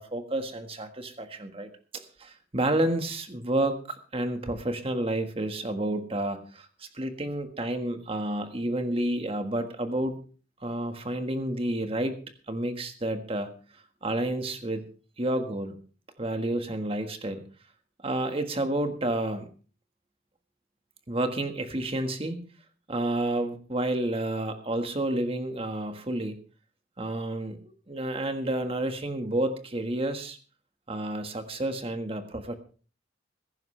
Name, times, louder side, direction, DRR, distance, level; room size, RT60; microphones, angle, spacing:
voice 1, 0.0-10.2 10.6-12.2 12.5-13.5 14.0-14.9 15.2-15.7 16.2-17.4 18.0-19.5 21.1-22.4 22.9-26.4 27.0-27.6 27.9-30.4 30.9-32.5, right 1 dB, 30° right, 7 dB, 1.6 m, -30 dB
21.0 x 10.5 x 3.3 m, 0.38 s
head